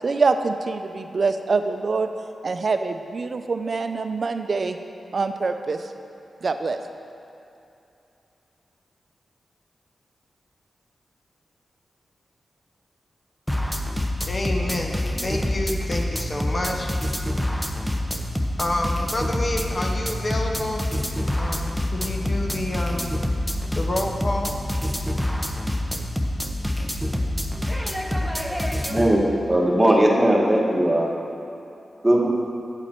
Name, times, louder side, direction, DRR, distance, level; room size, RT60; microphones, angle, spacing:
voice 1, 0.0-2.1 2.4-4.8 5.1-5.9 6.4-6.8, right 4 dB, 55° right, 8 dB, 0.5 m, -24 dB
sound 1, 13.5-29.1, left 1 dB, 5° left, 0.8 m, -26 dB
voice 2, 14.3-16.9 18.6-21.0 21.4-23.2 23.8-24.6, left 1 dB, 40° left, 1 dB, 0.9 m, -28 dB
voice 3, 28.9-29.2 29.5-31.1 32.0-32.3, right 1 dB, 15° right, -2 dB, 1.5 m, -18 dB
9.0 x 7.1 x 4.5 m, 2.7 s
cardioid pair, 65°, 0 cm